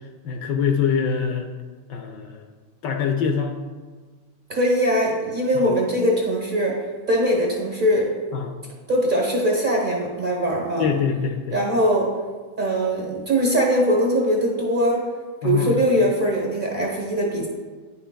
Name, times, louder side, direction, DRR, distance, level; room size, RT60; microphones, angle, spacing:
voice 1, 0.2-1.5 1.9-2.4 2.8-3.6 5.5-5.6 8.3-8.5 10.8-11.6 15.4-15.8, left 6 dB, 70° left, 3 dB, 1.1 m, -24 dB
voice 2, 4.5-8.1 8.9-10.9 11.5-12.2 12.6-15.1 15.4-17.5, equal, 35° right, -2 dB, 0.8 m, -21 dB
9.9 x 5.6 x 2.2 m, 1.4 s
omnidirectional pair, 2.2 m